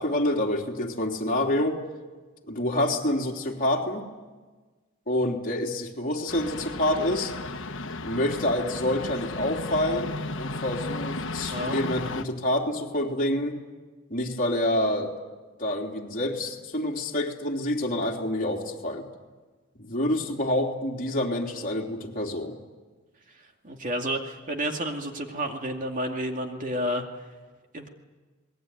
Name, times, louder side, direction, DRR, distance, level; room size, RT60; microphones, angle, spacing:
voice 1, 0.0-1.8 2.5-4.0 5.1-7.3 8.0-13.6 14.1-15.1 15.6-19.1 19.7-22.5, left 1 dB, 45° left, 0 dB, 3.4 m, -27 dB
sound 1, 6.3-12.2, left 2 dB, 70° left, 1.3 m, -34 dB
voice 2, 23.6-27.1 27.7-27.9, equal, 40° right, 3 dB, 2.4 m, -30 dB
27.5 x 20.5 x 9.3 m, 1.3 s
head